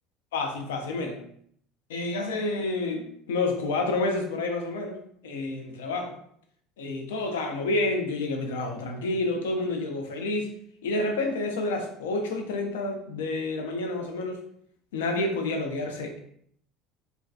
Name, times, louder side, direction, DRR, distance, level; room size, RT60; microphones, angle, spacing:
voice 1, 0.3-1.2 1.9-6.1 6.8-10.5 10.8-14.4 14.9-16.2, left 2 dB, 80° left, 3 dB, 0.4 m, -29 dB
2.4 x 2.3 x 2.3 m, 0.66 s
hypercardioid pair, 70°, 0 cm